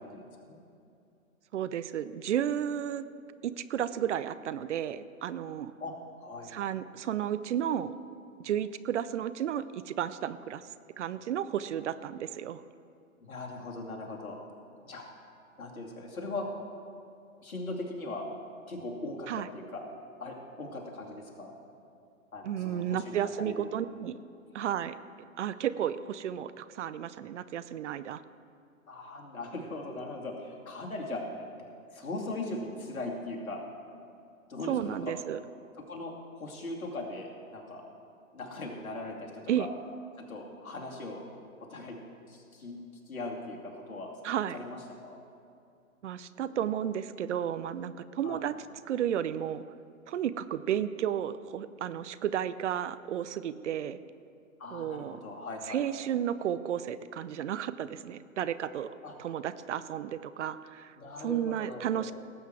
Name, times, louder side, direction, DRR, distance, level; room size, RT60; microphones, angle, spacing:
voice 1, 0.0-0.6 5.8-6.5 13.2-14.4 14.8-15.0 15.6-16.4 17.4-18.3 18.7-19.9 20.2-21.5 22.3-23.7 28.9-31.5 31.9-33.6 34.5-35.0 35.9-37.8 38.3-39.7 40.2-41.2 41.7-42.0 42.3-42.8 43.1-44.1 44.5-45.2 48.2-48.4 54.6-55.9 59.0-59.1 61.0-62.0, left 2 dB, 75° left, -1 dB, 2.7 m, -39 dB
voice 2, 1.5-3.1 3.4-5.7 6.5-7.9 8.4-10.6 11.0-12.6 19.3-19.5 22.4-24.2 24.5-24.9 25.4-28.2 34.7-35.4 39.5-39.7 44.2-44.6 46.0-48.5 48.9-49.6 50.1-54.0 54.7-55.2 55.7-58.9 59.2-62.1, right 10 dB, 55° right, 14 dB, 0.6 m, -32 dB
18.0 x 8.1 x 4.7 m, 2.5 s
figure-of-eight pair, 125°, 42 cm